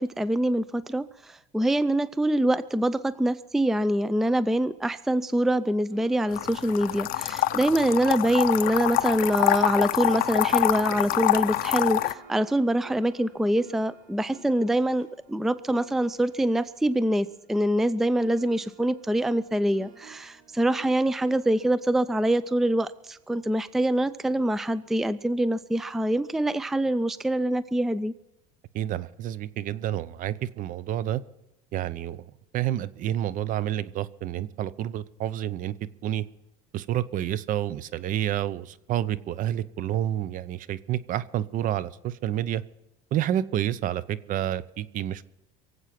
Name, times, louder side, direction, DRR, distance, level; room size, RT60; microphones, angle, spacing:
voice 1, 0.0-28.1, right 1 dB, ahead, 16 dB, 0.4 m, -25 dB
sound 1, 5.9-17.9 18.2-23.4, right 4 dB, 90° right, 3.1 m, -53 dB
sound 2, 6.3-12.1, left 15 dB, 55° left, 0.7 m, -25 dB
voice 2, 28.7-31.2 31.7-32.2 32.5-35.7 36.0-36.2 36.7-42.6 43.1-45.2, right 12 dB, 50° right, 18 dB, 0.7 m, -29 dB
23.5 x 8.1 x 5.9 m, 0.94 s
supercardioid pair, 120°, 18 cm